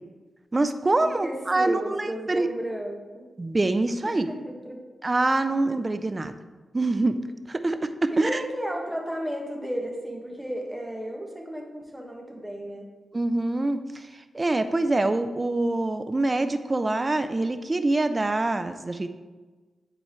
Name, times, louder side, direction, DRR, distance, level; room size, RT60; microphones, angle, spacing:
voice 1, 0.5-2.5 3.4-4.3 5.0-6.3 6.7-7.2 7.5-8.4 13.1-19.1, right 2 dB, 35° right, 10 dB, 0.5 m, -25 dB
voice 2, 1.2-3.3 4.0-4.8 8.1-12.9, equal, 5° right, 0 dB, 1.7 m, -34 dB
10.0 x 4.5 x 3.3 m, 1.3 s
supercardioid pair, 45°, 0 cm